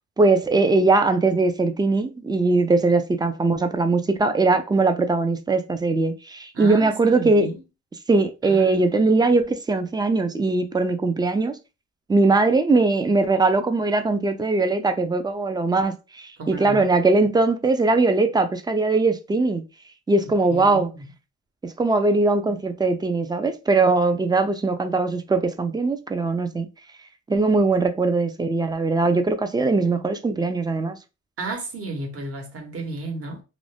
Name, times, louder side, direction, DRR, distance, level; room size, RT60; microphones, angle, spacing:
voice 1, 0.2-7.5 8.1-11.6 12.1-19.6 20.1-20.9 21.6-26.7 27.3-31.0, right 3 dB, 15° right, 0.4 m, -20 dB
voice 2, 6.5-7.6 8.4-8.9 16.4-16.9 20.5-21.1 22.4-22.5 31.4-33.4, right 2 dB, 50° right, 1.2 m, -33 dB
2.5 x 2.2 x 3.3 m
cardioid pair, 90°, 30 cm